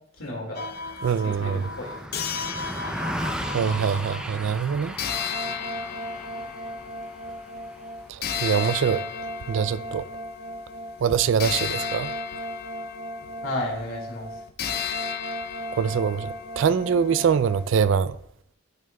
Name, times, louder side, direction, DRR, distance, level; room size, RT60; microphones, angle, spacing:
voice 1, 0.2-0.7 1.2-2.0 13.4-14.4, left 1 dB, 80° left, 2.0 m, -32 dB
sound 1, 0.5-4.3 5.0-17.7, left 4 dB, 45° left, 0.5 m, -33 dB
Car passing by, 0.7-10.4, equal, 5° right, 0.5 m, -37 dB
voice 2, 1.0-1.6 3.5-5.0 8.1-9.0 9.5-10.0 11.0-12.1 15.7-18.2, right 7 dB, 60° right, 0.3 m, -24 dB
12.0 x 6.4 x 2.3 m
head